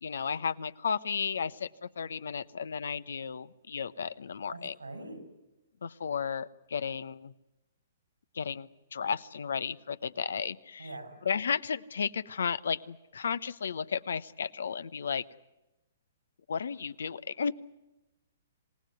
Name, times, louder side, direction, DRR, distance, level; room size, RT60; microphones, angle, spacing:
voice 1, 0.0-4.8 5.8-7.3 8.3-10.9 11.2-15.2 16.5-17.5, left 6 dB, 70° left, 16 dB, 0.9 m, -33 dB
voice 2, 4.5-5.2 10.8-11.2, right 2 dB, 90° right, 7 dB, 7.9 m, -43 dB
27.5 x 18.0 x 9.4 m, 0.98 s
figure-of-eight pair, 120°, 0 cm